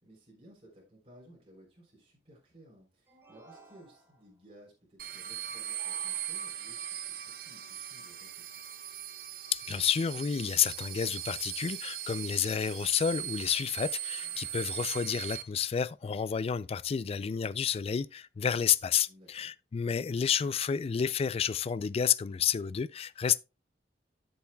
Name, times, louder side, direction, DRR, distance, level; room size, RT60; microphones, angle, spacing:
voice 1, 0.0-8.5 14.2-14.4 19.1-19.5, right 1 dB, 35° right, 3.6 m, -58 dB
sound 1, 3.1-4.4 5.5-6.8, right 3 dB, 15° right, 2.0 m, -58 dB
sound 2, 5.0-15.4, right 11 dB, 55° right, 0.9 m, -39 dB
voice 2, 9.5-23.4, left 7 dB, 35° left, 0.3 m, -30 dB
12.5 x 7.0 x 2.2 m
head